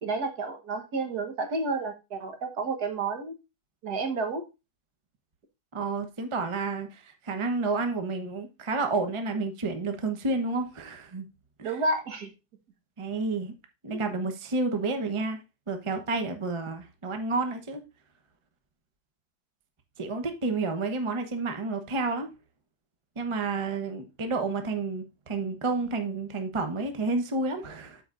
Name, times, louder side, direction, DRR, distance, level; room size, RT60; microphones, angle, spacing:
voice 1, 0.0-3.3 3.8-4.4 11.6-12.3 13.9-14.0, right 3 dB, 65° right, 1.7 m, -30 dB
voice 2, 5.7-11.3 11.6-11.7 13.0-13.5 13.8-15.4 15.7-17.8 20.0-22.3 23.2-28.0, right 3 dB, 25° right, 0.7 m, -30 dB
12.5 x 4.7 x 2.5 m
omnidirectional pair, 1.8 m